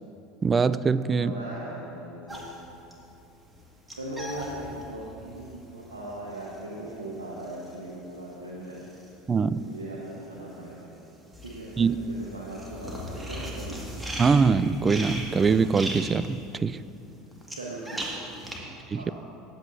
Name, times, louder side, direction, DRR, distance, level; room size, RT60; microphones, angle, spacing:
voice 1, 0.4-1.3 9.3-9.6 11.8-12.0 14.2-16.8 18.9-19.1, right 5 dB, 25° right, 16 dB, 0.3 m, -23 dB
voice 2, 1.1-2.5 4.0-8.8 9.4-10.9 11.4-13.8 17.5-18.0 18.5-19.1, right 1 dB, 90° right, -5 dB, 1.2 m, -39 dB
sound 1, 2.3-9.8 10.1-18.6, equal, 10° right, 2.0 m, -39 dB
17.0 x 8.1 x 2.7 m, 2.8 s
hypercardioid pair, 75°, 0 cm